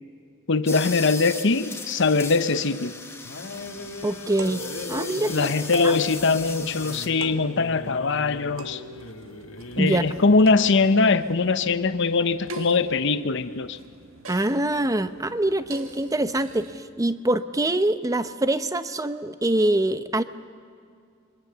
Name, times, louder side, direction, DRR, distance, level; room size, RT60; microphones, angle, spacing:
voice 1, 0.5-3.0 5.3-8.8 9.8-13.8, left 4 dB, 60° left, 11 dB, 0.8 m, -22 dB
sound 1, 0.7-7.1, left 4 dB, 15° left, 1.5 m, -38 dB
sound 2, 3.2-10.9, left 2 dB, 80° left, 1.7 m, -40 dB
sound 3, 3.5-16.8, right 1 dB, 75° right, 1.9 m, -41 dB
voice 2, 4.0-4.6 4.9-5.5 5.8-6.0 9.8-10.0 14.3-20.2, right 1 dB, 15° right, 12 dB, 0.7 m, -24 dB
27.5 x 24.0 x 6.9 m, 2.3 s
head